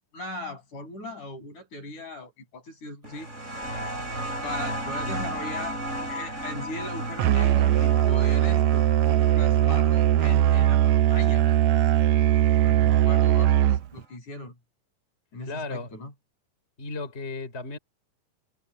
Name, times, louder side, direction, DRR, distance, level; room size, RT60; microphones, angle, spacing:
voice 1, 0.1-3.3 4.4-5.8 6.1-8.9 9.4-11.6 12.4-14.6 15.3-16.1, left 1 dB, 60° left, 9.0 m, -38 dB
sound 1, 3.0-12.3 13.4-13.5, right 1 dB, 20° right, 7.0 m, -35 dB
Musical instrument, 7.2-14.0, right 12 dB, 75° right, 1.7 m, -20 dB
voice 2, 15.4-15.9 16.8-17.8, left 3 dB, 20° left, 3.6 m, -34 dB
omnidirectional pair, 3.8 m